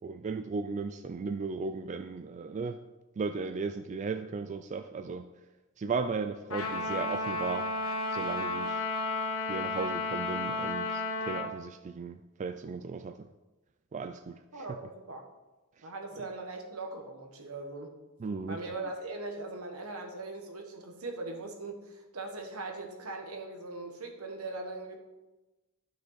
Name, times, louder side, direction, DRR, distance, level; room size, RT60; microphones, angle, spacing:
voice 1, 0.0-2.8 3.2-5.3 5.8-7.7 8.1-8.8 9.5-13.2 13.9-14.8 15.8-15.9 18.2-18.6, right 4 dB, 35° right, 8 dB, 0.3 m, -36 dB
Trumpet, 6.5-11.5, left 3 dB, 70° left, 1.2 m, -32 dB
voice 2, 14.5-15.3 15.8-18.0 18.5-25.0, right 2 dB, 75° right, 3 dB, 1.4 m, -40 dB
12.0 x 6.0 x 4.0 m, 1.1 s
head